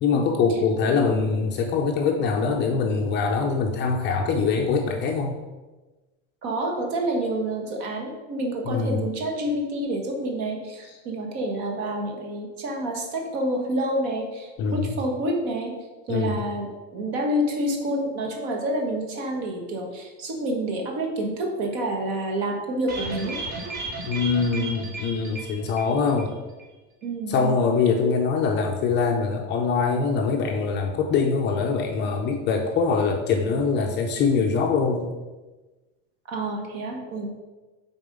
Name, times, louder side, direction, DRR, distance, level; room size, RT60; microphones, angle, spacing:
voice 1, 0.0-5.3 8.7-9.0 14.6-15.0 16.1-16.3 24.0-26.3 27.3-35.1, left 5 dB, 30° left, 2 dB, 0.5 m, -23 dB
voice 2, 6.4-15.7 16.1-23.4 27.0-27.6 36.3-37.3, right 1 dB, 50° right, 2 dB, 1.5 m, -28 dB
sound 1, 22.9-26.3 26.6-26.7 27.0-27.1, right 3 dB, 25° right, 1.1 m, -34 dB
6.8 x 4.1 x 5.3 m, 1.2 s
cardioid pair, 165°, 37 cm